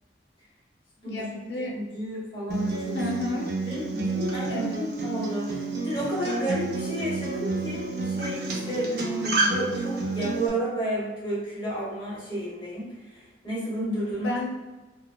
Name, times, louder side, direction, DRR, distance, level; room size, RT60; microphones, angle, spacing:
voice 1, 1.0-1.8 2.9-3.5 4.5-4.9 14.2-14.5, left 2 dB, 75° left, 2 dB, 0.5 m, -31 dB
voice 2, 1.6-3.0 3.3-14.4, right 1 dB, 30° left, -7 dB, 1.1 m, -32 dB
Acoustic guitar, 2.5-10.5, right 3 dB, 65° right, 0.5 m, -30 dB
3.1 x 2.1 x 2.3 m, 1.2 s
head